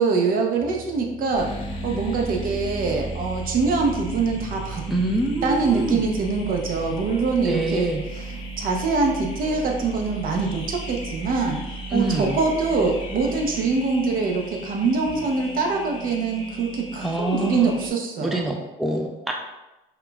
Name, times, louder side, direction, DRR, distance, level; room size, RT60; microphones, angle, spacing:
voice 1, 0.0-1.5 1.8-5.0 5.4-11.6 11.9-18.5, right 4 dB, 55° right, 1 dB, 0.7 m, -24 dB
sound 1, 0.6-8.9 9.4-10.3 12.1-13.9 14.9-17.5, right 2 dB, 25° right, 0.9 m, -41 dB
sound 2, 1.3-17.9, right 2 dB, 30° left, 0.8 m, -36 dB
voice 2, 4.9-6.0 7.4-8.0 11.9-12.4 17.0-17.7 18.2-19.3, right 1 dB, ahead, 1 dB, 0.4 m, -25 dB
5.7 x 2.2 x 2.3 m, 0.99 s
cardioid pair, 110°, 17 cm